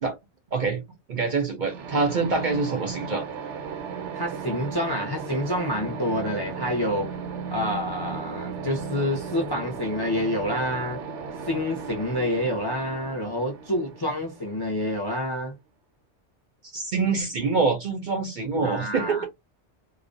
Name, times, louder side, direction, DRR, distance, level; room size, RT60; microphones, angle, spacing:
voice 1, 0.5-0.8 1.1-3.3 16.7-19.2, right 4 dB, 55° right, 0.6 m, -25 dB
sound 1, 1.7-15.3, right 5 dB, 90° right, 1.0 m, -36 dB
voice 2, 4.1-7.1 7.5-11.0 11.4-15.5 18.6-19.2, left 1 dB, 30° left, 0.4 m, -28 dB
2.4 x 2.0 x 2.5 m
omnidirectional pair, 1.2 m